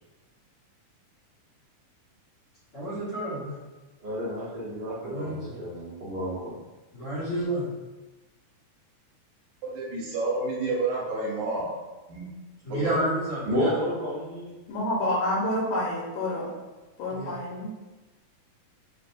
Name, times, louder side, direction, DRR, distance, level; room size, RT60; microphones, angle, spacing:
voice 1, 2.7-3.6 5.0-5.6 6.9-7.7 12.6-13.8 17.1-17.3, right 1 dB, 45° left, -12 dB, 1.7 m, -30 dB
voice 2, 4.0-6.5 13.4-14.6, equal, 50° right, -13 dB, 1.4 m, -31 dB
voice 3, 9.6-11.7 12.1-12.3 12.7-13.0, right 3 dB, 75° right, -4 dB, 2.2 m, -29 dB
voice 4, 14.7-16.5 17.0-17.7, left 1 dB, 80° left, -4 dB, 2.5 m, -28 dB
6.0 x 2.6 x 2.6 m, 1.2 s
omnidirectional pair, 3.5 m